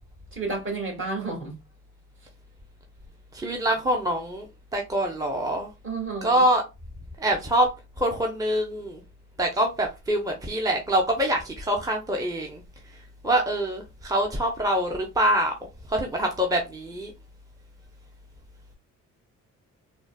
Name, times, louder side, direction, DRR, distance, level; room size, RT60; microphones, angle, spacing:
voice 1, 0.3-1.5 5.8-6.5, right 3 dB, 40° right, 1.6 m, -31 dB
voice 2, 3.3-4.5 4.7-5.7 6.2-6.6 7.2-7.7 8.0-9.0 9.4-12.6 12.9-15.5 15.9-17.1, right 1 dB, 10° right, 0.6 m, -25 dB
3.8 x 2.1 x 2.2 m
cardioid pair, 90°, 30 cm